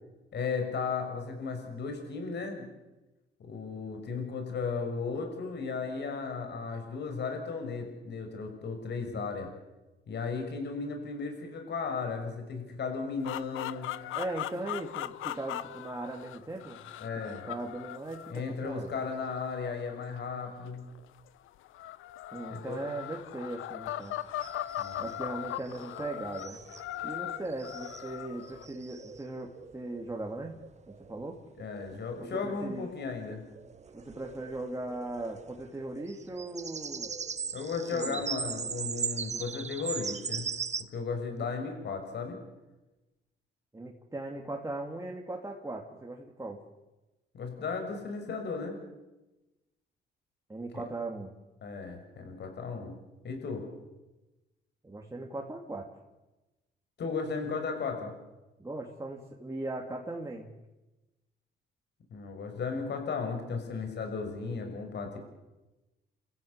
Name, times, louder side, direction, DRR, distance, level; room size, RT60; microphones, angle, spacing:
voice 1, 0.3-2.7 3.4-9.5 10.1-13.9 17.0-17.4 18.3-20.8 22.5-22.8 24.8-25.1 31.6-33.4 37.5-40.5 40.9-42.4 47.3-48.7 50.7-50.8 51.6-52.9 53.2-53.6 57.0-58.1 62.1-65.2, left 4 dB, 60° left, 4 dB, 6.4 m, -35 dB
sound 1, 13.2-21.0 21.7-28.7, left 13 dB, 85° left, 1.0 m, -39 dB
voice 2, 14.1-16.8 17.4-18.9 22.3-24.2 25.0-26.6 27.0-30.6 30.9-31.4 32.2-32.9 33.9-37.1 37.9-38.2 43.7-46.6 50.5-51.3 54.8-55.9 58.6-60.5, right 2 dB, 15° right, 0 dB, 3.2 m, -38 dB
sound 2, 24.0-24.1 24.4-25.1 25.5-40.8, right 5 dB, 35° right, 1.4 m, -40 dB
30.0 x 15.5 x 8.4 m, 1.1 s
cardioid pair, 90°, 20 cm